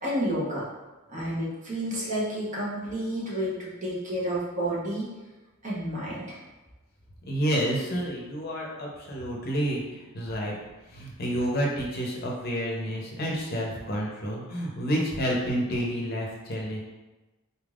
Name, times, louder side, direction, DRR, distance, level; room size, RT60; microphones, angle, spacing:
voice 1, 0.0-0.6 1.1-5.1 5.6-6.4, equal, 35° right, -6 dB, 1.0 m, -30 dB
voice 2, 7.3-10.5 10.9-16.8, equal, 45° left, -2 dB, 0.7 m, -29 dB
4.1 x 3.5 x 2.4 m, 1.1 s
head